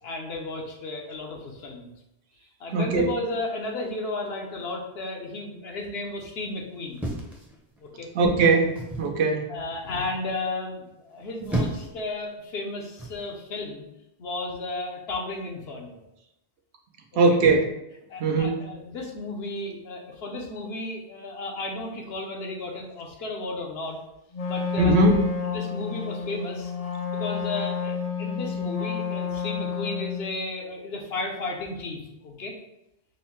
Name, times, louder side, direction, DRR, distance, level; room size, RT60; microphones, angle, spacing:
voice 1, 0.0-1.9 2.6-7.0 7.8-8.1 9.5-13.9 14.2-16.0 17.3-17.4 18.1-24.0 24.5-25.2 25.5-26.7 27.1-32.6, left 2 dB, 75° left, 1 dB, 1.0 m, -34 dB
voice 2, 2.7-3.1 8.1-9.5 17.2-17.7 18.2-18.6 24.8-25.1, right 3 dB, 90° right, 2 dB, 0.9 m, -20 dB
sound 1, 7.0-8.0 8.8-9.2 11.1-12.0 13.0-13.3, right 2 dB, ahead, 0.5 m, -31 dB
Wind instrument woodwind instrument, 24.3-30.3, left 6 dB, 55° left, 0.4 m, -30 dB
5.3 x 2.1 x 2.9 m, 0.87 s
omnidirectional pair, 1.1 m